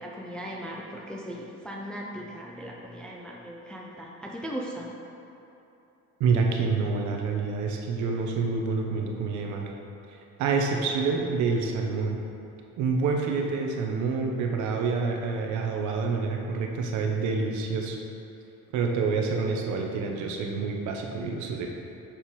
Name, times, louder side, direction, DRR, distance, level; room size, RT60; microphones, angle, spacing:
voice 1, 0.0-4.9, equal, 5° left, -2 dB, 0.4 m, -38 dB
voice 2, 6.2-9.7 10.4-12.2 12.8-18.0 18.7-21.7, right 4 dB, 60° right, 1 dB, 1.0 m, -27 dB
6.6 x 5.9 x 4.9 m, 2.9 s
cardioid pair, 175°, 33 cm